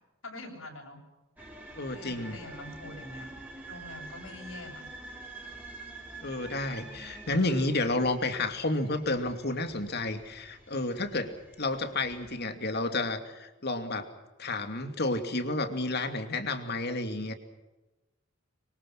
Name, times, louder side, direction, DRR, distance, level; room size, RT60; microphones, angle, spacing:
voice 1, 0.2-1.0 1.9-3.3 3.7-4.9, left 2 dB, 75° left, 1 dB, 7.5 m, -44 dB
sound 1, 1.4-12.4, right 2 dB, 10° right, 5.0 m, -47 dB
voice 2, 1.8-2.4 6.2-14.1 14.4-17.3, left 2 dB, 50° left, 7 dB, 2.7 m, -31 dB
25.0 x 24.5 x 6.1 m, 1.0 s
head